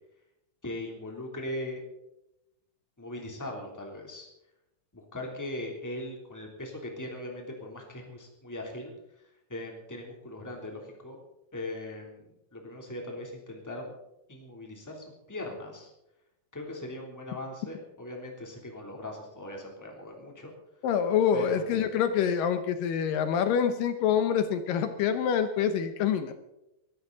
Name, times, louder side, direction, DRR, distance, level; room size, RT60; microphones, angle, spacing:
voice 1, 0.6-1.8 3.0-4.3 4.9-8.9 9.5-11.2 11.5-13.9 14.3-15.9 16.5-20.5 21.3-21.9, left 1 dB, 5° left, 0 dB, 2.7 m, -39 dB
voice 2, 20.8-26.3, left 8 dB, 75° left, 9 dB, 2.5 m, -26 dB
23.5 x 12.5 x 4.0 m, 0.88 s
omnidirectional pair, 4.1 m